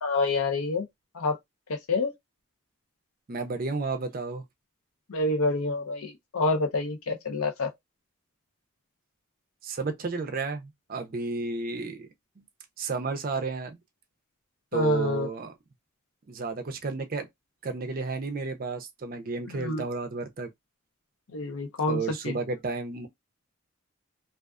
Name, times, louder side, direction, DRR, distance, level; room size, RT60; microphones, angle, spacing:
voice 1, 0.0-0.9 1.1-1.4 1.7-2.1 5.1-7.7 14.7-15.3 19.5-19.8 21.3-22.4, left 3 dB, 90° left, 0.6 m, -27 dB
voice 2, 3.3-4.4 9.6-12.1 12.8-13.8 14.7-15.5 16.3-17.3 17.6-20.5 21.9-23.1, right 4 dB, 40° right, 0.5 m, -32 dB
2.4 x 2.3 x 2.3 m
head